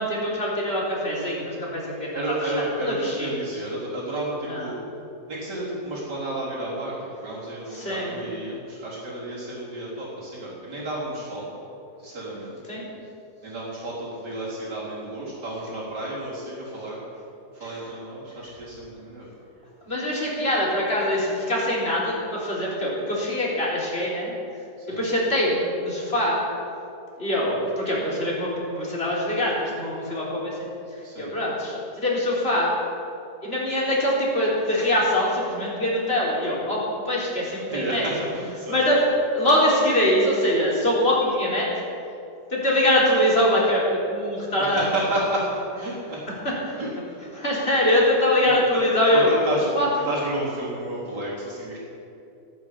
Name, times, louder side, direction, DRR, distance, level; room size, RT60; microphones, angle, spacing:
voice 1, 0.0-3.3 4.5-4.7 7.7-8.2 12.7-12.9 17.7-17.8 19.9-24.3 24.9-26.4 27.2-32.7 33.4-38.0 38.7-39.0 39.3-41.7 42.5-44.9 46.4-46.8 47.3-49.3 49.7-49.9, left 1 dB, 35° left, -5 dB, 4.1 m, -23 dB
voice 2, 2.1-4.8 5.3-11.6 12.0-12.6 13.4-17.0 17.5-19.3 24.8-25.0 31.0-31.3 37.7-38.8 44.6-46.2 46.8-47.2 48.4-48.6 49.1-49.7 50.0-51.8, right 1 dB, 80° right, -6 dB, 4.4 m, -31 dB
16.0 x 9.0 x 8.4 m, 2.8 s
omnidirectional pair, 1.8 m